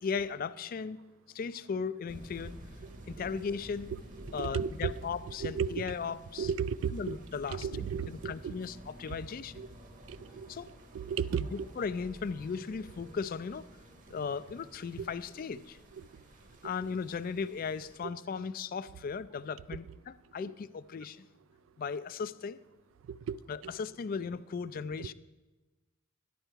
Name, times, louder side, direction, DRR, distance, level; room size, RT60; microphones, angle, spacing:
voice 1, 0.0-1.0 1.3-2.6 3.1-3.9 4.3-6.5 6.9-9.6 10.5-10.7 11.4-13.7 14.1-15.8 16.6-21.3 21.8-22.6 23.5-25.1, left 5 dB, 45° left, 15 dB, 0.3 m, -37 dB
sound 1, 2.1-18.0, right 1 dB, 40° right, 1.0 m, -51 dB
voice 2, 4.5-4.9 5.4-5.8 6.4-7.1 7.6-8.3 10.3-10.5 11.0-11.4 23.3-23.4, right 7 dB, 70° right, 19 dB, 0.3 m, -32 dB
11.0 x 10.5 x 4.6 m, 1.2 s
head